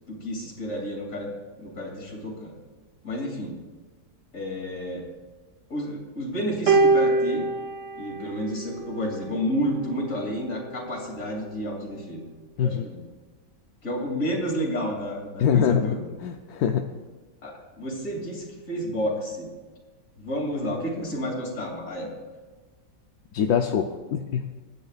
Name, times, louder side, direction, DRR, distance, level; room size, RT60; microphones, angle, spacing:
voice 1, 0.1-1.3 1.6-2.5 3.0-3.6 4.3-5.1 5.7-7.5 7.9-12.2 12.6-13.0 13.8-16.1 17.4-19.5 20.2-22.1, equal, 45° left, -1 dB, 3.2 m, -30 dB
sound 1, 6.7-9.1 10.2-10.3, right 3 dB, 45° right, 1.2 m, -23 dB
voice 2, 15.4-16.9 23.3-24.5, left 8 dB, 65° left, 4 dB, 1.1 m, -24 dB
25.5 x 9.9 x 2.4 m, 1.3 s
omnidirectional pair, 1.9 m